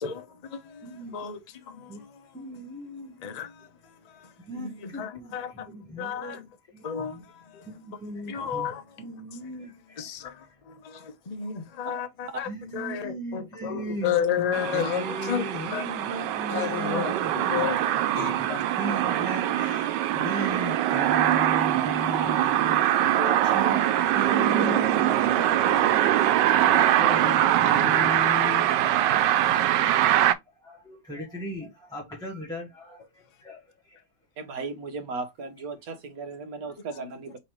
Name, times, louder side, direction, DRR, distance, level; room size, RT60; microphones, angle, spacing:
voice 1, 0.0-1.4 1.7-2.3 3.2-3.7 4.1-5.7 6.0-6.5 6.8-7.7 8.3-8.8 10.0-15.4 15.7-15.9 16.5-17.8 18.1-18.6 23.0-23.8, left 8 dB, 40° left, 0.5 m, -32 dB
voice 2, 0.8-1.3 1.9-2.1 2.3-3.2 4.4-6.4 6.7-10.1 10.4-10.6 10.9-11.0 11.9-29.8 30.1-34.0, equal, 5° left, 1.0 m, -38 dB
sound 1, 14.5-30.3, right 12 dB, 90° right, 1.2 m, -23 dB
voice 3, 34.4-37.4, right 4 dB, 60° right, 1.3 m, -36 dB
5.3 x 3.2 x 3.0 m
omnidirectional pair, 1.8 m